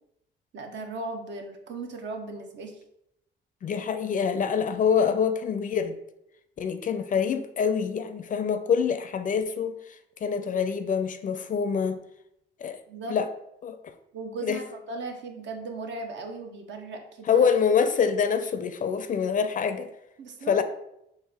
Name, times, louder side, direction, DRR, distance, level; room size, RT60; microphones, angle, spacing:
voice 1, 0.5-2.8 12.9-13.2 14.1-17.5 20.2-20.6, right 3 dB, 65° right, 4 dB, 0.8 m, -37 dB
voice 2, 3.6-6.0 6.6-9.7 10.2-12.0 12.6-12.8 13.1-13.3 13.6-13.8 14.4-14.6 17.3-19.9 20.5-20.6, left 6 dB, 40° left, 9 dB, 0.4 m, -25 dB
4.6 x 2.8 x 3.4 m, 0.82 s
cardioid pair, 90°, 20 cm